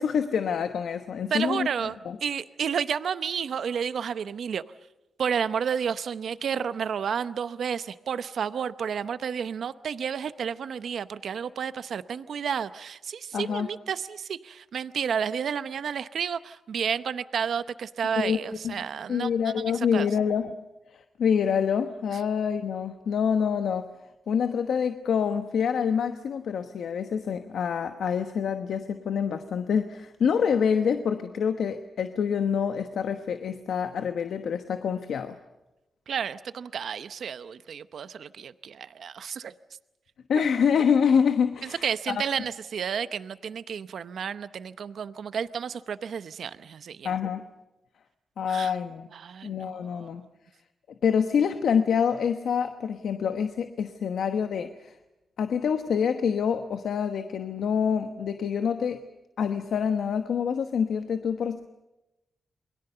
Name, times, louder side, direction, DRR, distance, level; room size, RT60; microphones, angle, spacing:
voice 1, 0.0-1.7 2.0-2.2 13.3-13.7 18.2-18.4 18.6-18.8 19.1-20.6 20.9-23.9 24.3-35.4 40.3-42.2 47.0-47.4 48.4-49.1 49.4-50.2 51.0-55.0 55.4-59.0 59.4-61.7, left 7 dB, 80° left, 8 dB, 1.1 m, -26 dB
voice 2, 1.3-2.0 2.2-4.6 5.2-19.6 19.9-20.1 36.1-39.5 41.8-47.1 48.5-48.7 49.1-50.1, right 7 dB, 75° right, 13 dB, 0.8 m, -31 dB
28.5 x 22.0 x 6.8 m, 0.97 s
cardioid pair, 85°, 0 cm